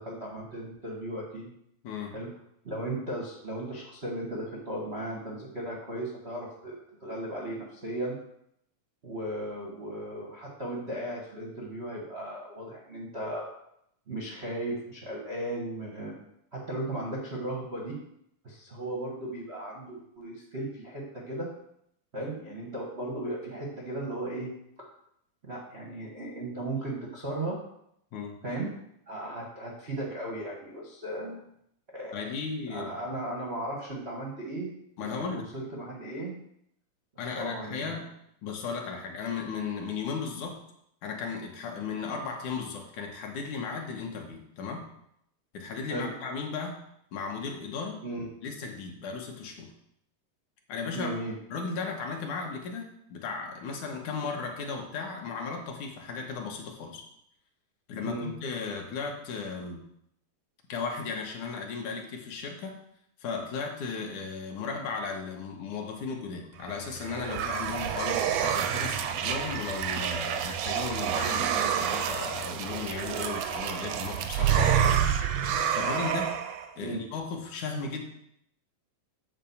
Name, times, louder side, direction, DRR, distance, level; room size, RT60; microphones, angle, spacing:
voice 1, 0.0-1.5 2.1-2.3 2.6-8.1 9.0-13.5 14.1-16.1 16.5-18.0 18.4-21.5 22.1-24.5 24.8-24.9 25.4-27.6 28.4-28.7 29.1-31.4 31.9-32.2 32.7-34.7 35.0-36.4 37.3-38.0 45.9-46.1 48.0-48.3 50.9-51.3 58.0-58.3 76.7-77.0, right 1 dB, 60° right, -3 dB, 0.6 m, -36 dB
voice 2, 1.8-2.2 28.1-28.4 32.1-33.0 35.0-35.5 37.2-38.1 38.4-40.6 41.0-44.9 45.5-46.8 47.1-48.0 48.4-49.7 50.7-51.1 51.5-57.0 57.9-59.8 60.7-62.8 63.2-74.9 75.5-76.3 76.8-78.0, left 5 dB, 70° left, 1 dB, 2.5 m, -35 dB
sound 1, 66.7-76.7, right 8 dB, 80° right, 1.5 m, -28 dB
9.1 x 4.1 x 7.1 m, 0.74 s
omnidirectional pair, 3.8 m